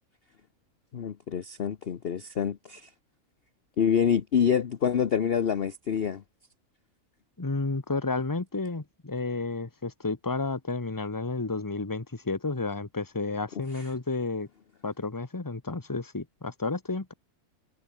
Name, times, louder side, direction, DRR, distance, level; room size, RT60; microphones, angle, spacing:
voice 1, 0.9-2.9 3.8-6.2 13.7-13.9, left 8 dB, 45° left, 1.0 m, -26 dB
voice 2, 7.4-14.5 14.8-17.1, left 3 dB, 15° left, 1.3 m, -31 dB
omnidirectional pair, 1.6 m